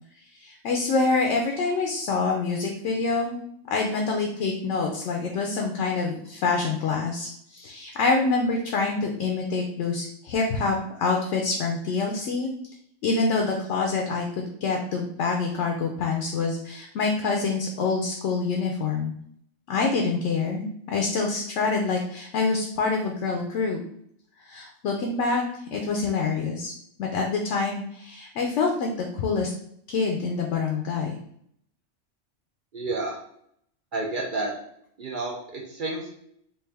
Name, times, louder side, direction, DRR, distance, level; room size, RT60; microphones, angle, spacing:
voice 1, 0.3-3.4 3.7-12.5 13.0-19.1 19.7-23.8 24.5-26.7 27.0-29.5 29.9-31.2, left 4 dB, 75° left, 1 dB, 0.9 m, -26 dB
voice 2, 32.7-33.2 33.9-34.5 35.0-36.1, right 2 dB, 55° right, 0 dB, 0.6 m, -30 dB
3.4 x 2.5 x 3.3 m, 0.69 s
omnidirectional pair, 1.3 m